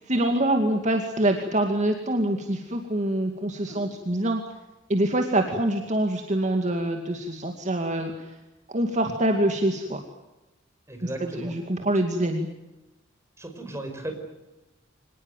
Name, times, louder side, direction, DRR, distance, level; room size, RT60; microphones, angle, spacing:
voice 1, 0.0-4.4 4.9-8.3 8.7-10.0 11.0-12.5, right 1 dB, 40° right, 4 dB, 2.3 m, -25 dB
voice 2, 10.9-11.5 13.4-14.1, right 1 dB, 15° right, 4 dB, 5.4 m, -36 dB
25.5 x 19.5 x 9.2 m, 1.0 s
head